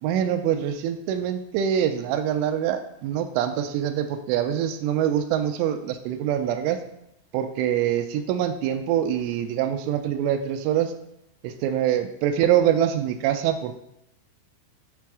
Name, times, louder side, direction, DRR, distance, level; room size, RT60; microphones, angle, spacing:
voice 1, 0.0-6.8 7.3-10.9 11.4-13.7, right 10 dB, 85° right, 8 dB, 2.9 m, -24 dB
8.3 x 4.3 x 4.7 m, 0.79 s
omnidirectional pair, 5.8 m